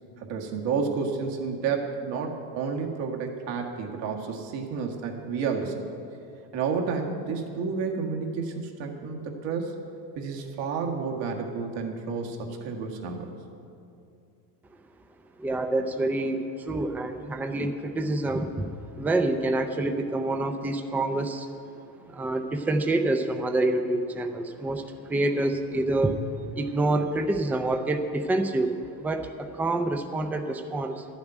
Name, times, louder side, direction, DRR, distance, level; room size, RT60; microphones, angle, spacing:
voice 1, 0.2-5.8 6.5-9.8 10.2-13.3, right 5 dB, 60° right, 2 dB, 1.8 m, -30 dB
voice 2, 15.4-18.7 19.0-21.5 22.1-26.2 26.5-31.1, right 2 dB, 5° right, 6 dB, 0.4 m, -27 dB
12.0 x 7.2 x 9.1 m, 2.6 s
supercardioid pair, 125°, 48 cm